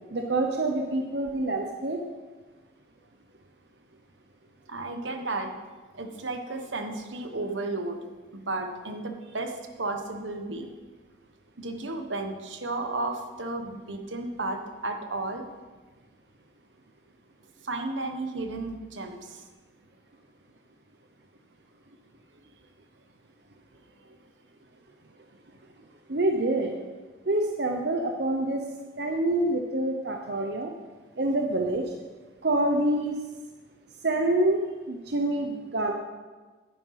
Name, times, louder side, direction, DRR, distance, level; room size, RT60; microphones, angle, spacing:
voice 1, 0.1-2.0 26.1-26.7 27.3-28.7 29.0-30.7 31.2-31.8 32.4-33.1 34.0-35.9, right 1 dB, 60° right, 3 dB, 0.8 m, -26 dB
voice 2, 4.7-5.5 5.9-8.0 8.3-10.7 11.6-15.4 17.6-19.4 24.0-24.1, right 2 dB, 80° right, 5 dB, 1.3 m, -33 dB
10.0 x 9.8 x 5.8 m, 1.3 s
head